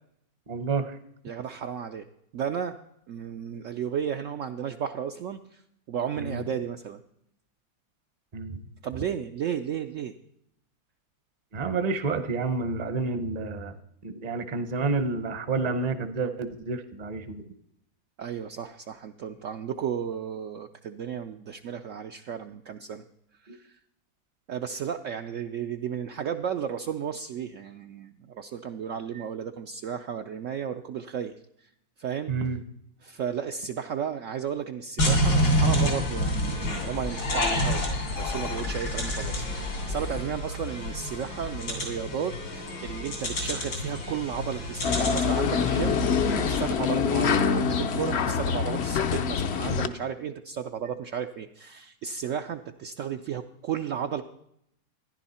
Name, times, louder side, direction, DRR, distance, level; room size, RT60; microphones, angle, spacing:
voice 1, 0.5-1.0 6.2-6.4 8.3-8.6 11.5-13.7 14.0-17.4 23.5-23.6 32.3-32.6, right 4 dB, 40° right, 10 dB, 0.6 m, -29 dB
voice 2, 1.2-2.1 2.3-2.8 3.1-5.6 5.9-7.0 8.8-10.1 18.2-23.0 23.4-23.8 24.5-31.3 32.0-32.3 33.0-54.2, right 8 dB, 80° right, 6 dB, 0.7 m, -33 dB
sound 1, 35.0-46.7, equal, 85° left, 3.7 m, -28 dB
sound 2, 44.8-49.9, left 6 dB, 65° left, 0.6 m, -25 dB
14.5 x 10.5 x 4.2 m, 0.75 s
omnidirectional pair, 2.0 m